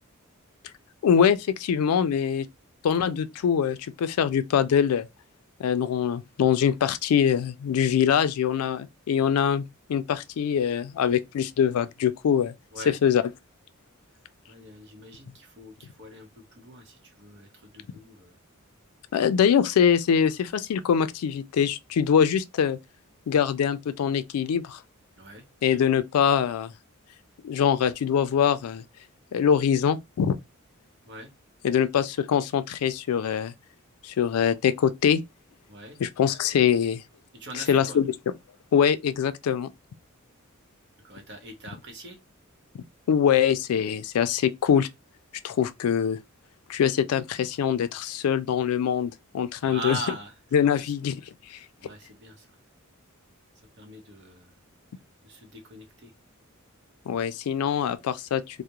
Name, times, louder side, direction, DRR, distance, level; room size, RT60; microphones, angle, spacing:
voice 1, 1.0-2.5 2.8-5.1 5.6-9.6 9.9-12.5 12.9-13.2 19.1-22.8 23.3-24.8 25.6-26.7 27.4-28.8 29.3-30.4 31.6-33.5 34.0-35.2 36.0-37.0 37.7-38.0 38.7-39.7 43.1-44.9 45.4-46.2 46.7-50.0 50.5-51.2 51.5-51.6 57.1-58.6, left 8 dB, 85° left, 0.3 m, -23 dB
voice 2, 14.4-18.4 25.2-25.4 31.1-31.3 35.7-36.0 37.3-38.0 41.0-42.2 49.6-50.3 50.7-50.8 51.8-52.6 53.8-54.5 55.2-56.1, right 2 dB, 55° right, 0.8 m, -41 dB
2.3 x 2.0 x 2.8 m
head